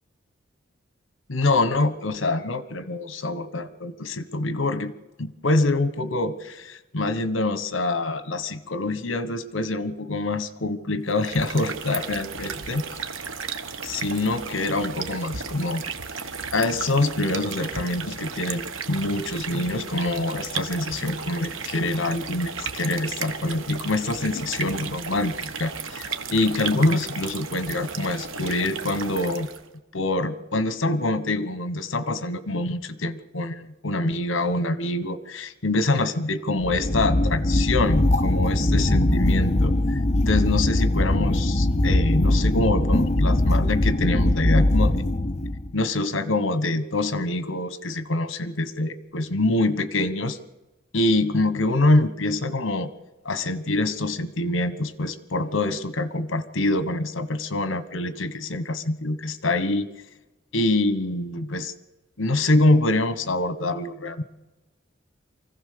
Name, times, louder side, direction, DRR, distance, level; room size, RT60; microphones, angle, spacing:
voice 1, 1.3-4.9 5.2-12.8 13.8-15.8 16.5-29.5 29.9-40.0 40.3-45.0 45.7-50.4 50.9-52.9 53.2-59.9 60.5-61.7 62.2-64.2, left 2 dB, 70° left, 13 dB, 1.3 m, -25 dB
sound 1, 11.1-29.7, right 5 dB, 80° right, 1.3 m, -34 dB
sound 2, 36.6-45.7, left 1 dB, 35° left, 0.8 m, -21 dB
24.5 x 15.5 x 6.8 m, 1.1 s
head